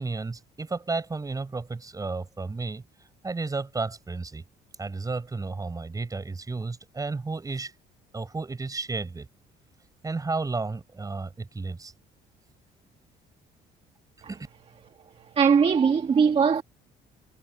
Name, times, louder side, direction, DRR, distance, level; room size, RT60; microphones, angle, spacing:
voice 1, 0.0-4.4 4.8-7.7 8.1-9.3 10.0-11.9 14.3-14.5, right 3 dB, 20° right, 6.8 m, -32 dB
voice 2, 15.4-16.6, right 6 dB, 35° right, 1.9 m, -20 dB
cardioid pair, 110°, 17 cm